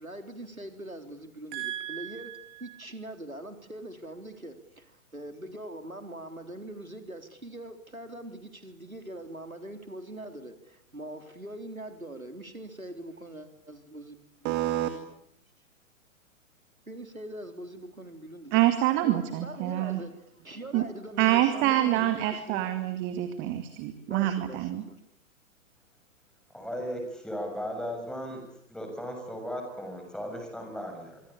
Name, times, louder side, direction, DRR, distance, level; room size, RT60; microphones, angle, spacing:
voice 1, 0.0-14.6 14.9-15.1 16.9-18.6 19.0-22.7 24.0-25.0, right 1 dB, 90° right, 7 dB, 3.9 m, -42 dB
voice 2, 1.5-2.4 14.4-14.9 18.5-20.0 20.7-20.9 21.2-24.8, right 14 dB, 30° right, 9 dB, 2.3 m, -27 dB
voice 3, 26.5-28.4 28.7-31.2, equal, ahead, 4 dB, 7.0 m, -36 dB
25.5 x 24.5 x 8.7 m, 0.71 s
figure-of-eight pair, 110°, 41 cm